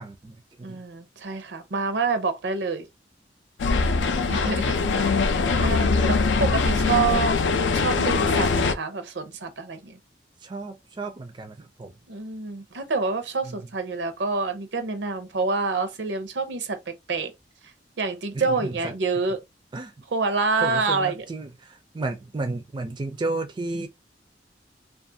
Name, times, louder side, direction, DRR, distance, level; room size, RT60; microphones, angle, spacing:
voice 1, 0.0-0.8 3.9-4.1 4.4-5.1 5.5-6.1 10.4-11.9 13.4-13.7 18.3-19.2 19.7-19.9 20.6-23.9, right 2 dB, 25° right, 0.4 m, -34 dB
voice 2, 0.6-2.9 4.3-7.4 7.7-10.0 12.1-17.3 18.0-19.4 20.1-21.2, right 4 dB, 80° right, 0.7 m, -27 dB
sound 1, 3.6-8.7, left 4 dB, 85° left, 0.4 m, -22 dB
2.4 x 2.4 x 2.7 m
head